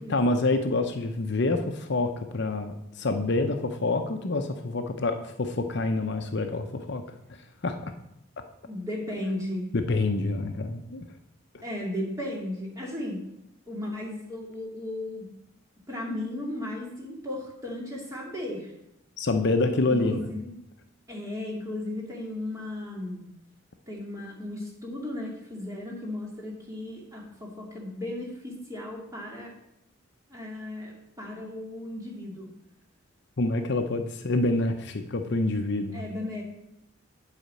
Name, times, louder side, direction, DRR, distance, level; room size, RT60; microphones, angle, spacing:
voice 1, 0.1-7.0 7.6-7.9 9.7-11.0 11.5-11.6 19.2-20.2 33.4-36.0, left 2 dB, 50° left, 6 dB, 0.7 m, -27 dB
voice 2, 8.7-9.7 11.6-13.2 13.7-15.3 15.9-18.7 19.9-20.5 21.1-23.3 23.9-29.5 30.3-32.5 35.9-36.4, left 1 dB, 15° right, -2 dB, 2.3 m, -35 dB
8.4 x 5.0 x 7.6 m, 0.80 s
head